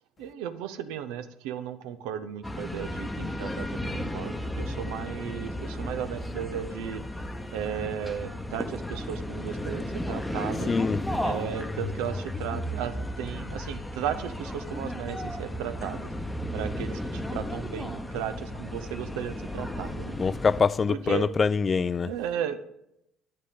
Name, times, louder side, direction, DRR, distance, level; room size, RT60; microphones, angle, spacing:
voice 1, 0.2-7.0 7.5-10.7 11.2-16.1 16.5-20.2 20.9-21.3 22.0-22.6, right 9 dB, 80° right, 0.6 m, -35 dB
sound 1, 2.4-20.6, left 1 dB, 10° left, 0.9 m, -34 dB
voice 2, 10.7-11.0 20.2-22.1, left 5 dB, 35° left, 0.3 m, -24 dB
9.9 x 8.7 x 3.7 m
supercardioid pair, 75°, 0 cm